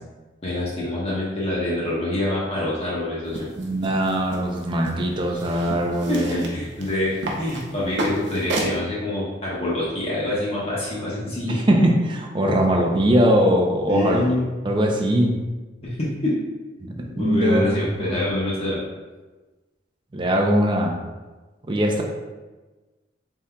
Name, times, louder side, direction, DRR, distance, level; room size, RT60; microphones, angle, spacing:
voice 1, 0.4-3.5 5.3-5.4 6.1-11.6 13.9-14.5 15.8-16.3 17.2-18.8, left 1 dB, 35° left, -7 dB, 0.8 m, -26 dB
sound 1, 3.3-8.8, right 1 dB, 80° right, 0.7 m, -32 dB
voice 2, 3.6-6.5 11.5-14.3 14.6-15.3 16.8-17.7 18.0-18.2 20.1-21.0 21.7-22.0, equal, 25° right, 1 dB, 0.5 m, -21 dB
4.3 x 3.6 x 2.2 m, 1.2 s
head